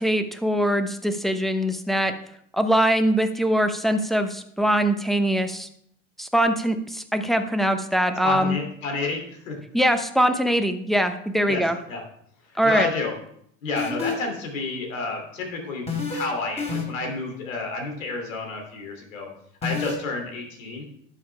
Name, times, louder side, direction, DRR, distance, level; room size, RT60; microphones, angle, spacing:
voice 1, 0.0-2.1 2.5-5.7 6.2-8.6 9.7-11.8 12.6-12.9, equal, ahead, 6 dB, 0.9 m, -22 dB
voice 2, 8.2-9.6 11.5-11.6 11.9-12.0 12.6-13.1 13.6-19.3 19.6-20.8, left 3 dB, 80° left, 2 dB, 3.1 m, -30 dB
sound 1, 13.8-14.3 15.9-16.2 16.6-17.1 19.6-19.9, left 5 dB, 15° left, 4.3 m, -28 dB
12.0 x 7.1 x 3.4 m, 0.69 s
hypercardioid pair, 90°, 39 cm